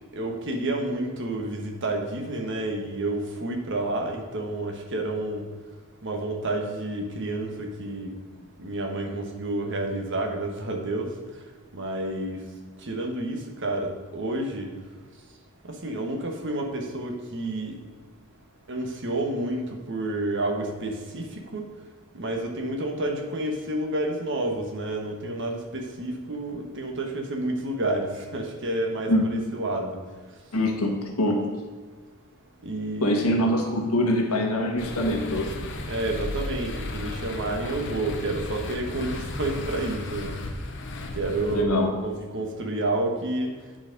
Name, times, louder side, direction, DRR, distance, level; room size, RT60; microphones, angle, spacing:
voice 1, 0.1-5.4 6.0-8.1 8.6-11.1 11.7-12.4 12.8-14.7 15.7-17.8 18.7-21.6 22.1-30.0 32.6-33.3 35.9-40.4 41.1-43.6, right 2 dB, 55° right, 2 dB, 1.3 m, -29 dB
voice 2, 30.5-31.6 33.0-35.7 41.5-42.0, left 1 dB, 90° left, 0 dB, 1.6 m, -24 dB
sound 1, 34.8-41.6, left 2 dB, 55° left, 0.8 m, -34 dB
9.2 x 4.4 x 5.2 m, 1.5 s
head